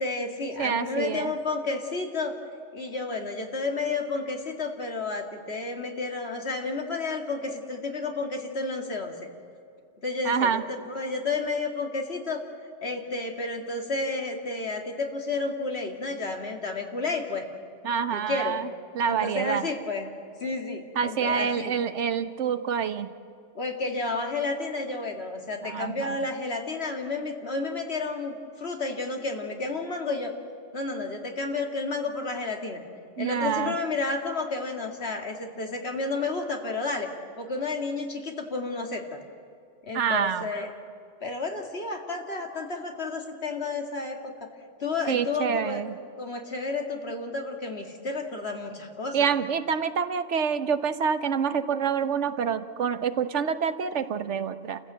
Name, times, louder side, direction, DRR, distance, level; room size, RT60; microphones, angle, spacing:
voice 1, 0.0-2.3 2.7-9.3 10.0-12.4 12.8-17.4 18.1-18.6 19.1-20.1 20.4-21.7 23.5-30.3 30.7-32.8 33.2-37.1 37.4-39.2 39.8-40.7 41.2-44.5 44.8-45.8 46.2-49.3, left 3 dB, 65° left, 2 dB, 2.4 m, -31 dB
voice 2, 0.6-1.3 10.2-10.6 17.8-18.7 18.9-19.7 20.9-23.1 25.6-26.2 33.2-33.7 39.9-40.4 45.1-45.9 49.1-54.8, right 7 dB, 85° right, 11 dB, 1.3 m, -27 dB
29.5 x 15.0 x 8.1 m, 2.4 s
omnidirectional pair, 1.2 m